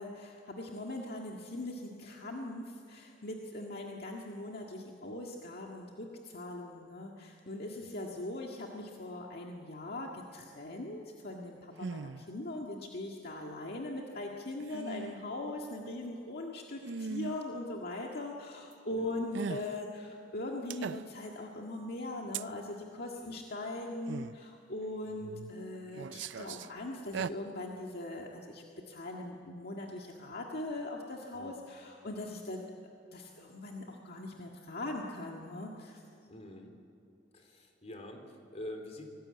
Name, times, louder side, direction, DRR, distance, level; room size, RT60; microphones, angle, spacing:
voice 1, 0.0-32.6 33.1-36.0, left 2 dB, 60° left, 0 dB, 1.8 m, -41 dB
sound 1, 11.8-12.2 14.6-15.1 16.8-17.4 19.3-19.7 20.7-21.3 22.3-22.5 24.1-24.3 25.1-25.5 25.9-26.7 27.0-27.3, right 5 dB, 75° right, 0.5 m, -39 dB
voice 2, 18.9-19.2 23.2-23.4 31.3-31.5 36.3-36.7 37.3-39.1, left 1 dB, 35° left, 4 dB, 3.4 m, -46 dB
25.0 x 19.5 x 8.7 m, 2.6 s
head